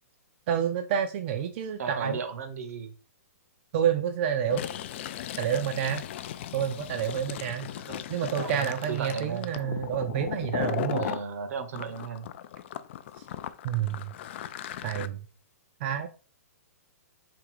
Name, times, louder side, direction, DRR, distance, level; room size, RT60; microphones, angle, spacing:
voice 1, 0.5-2.2 3.7-4.6 5.4-6.0 6.5-7.7 8.1-11.1 13.2-13.3 13.6-14.1 14.8-15.2 15.8-16.1, right 9 dB, 40° right, 6 dB, 0.4 m, -28 dB
voice 2, 1.8-2.9 7.8-9.5 11.0-12.3, right 6 dB, 70° right, 9 dB, 0.9 m, -36 dB
Fill (with liquid), 4.4-11.2 11.7-15.1, left 11 dB, 45° left, 0.3 m, -37 dB
3.7 x 2.8 x 4.7 m, 0.37 s
hypercardioid pair, 150°, 9 cm